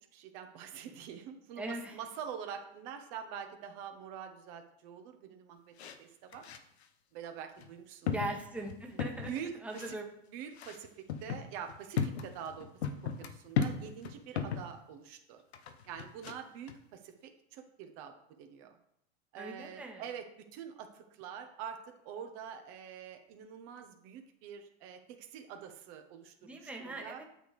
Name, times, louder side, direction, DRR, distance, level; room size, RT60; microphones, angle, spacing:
voice 1, 0.1-6.4 7.1-8.3 9.2-10.0 10.3-12.7 13.2-15.4 15.9-18.1 18.4-18.8 19.3-27.2, right 8 dB, 50° right, 5 dB, 1.1 m, -45 dB
voice 2, 1.6-2.0 8.1-9.3 9.6-10.1 19.4-20.0 26.4-27.2, right 2 dB, 5° right, 0 dB, 1.2 m, -40 dB
sound 1, 5.8-6.0 6.3-6.8 7.6-7.7 8.1-9.4 9.7-9.9 10.6-14.7 15.5-16.4 16.7-16.8, left 7 dB, 90° left, 0.9 m, -36 dB
8.9 x 6.5 x 3.3 m, 0.74 s
hypercardioid pair, 115°, 31 cm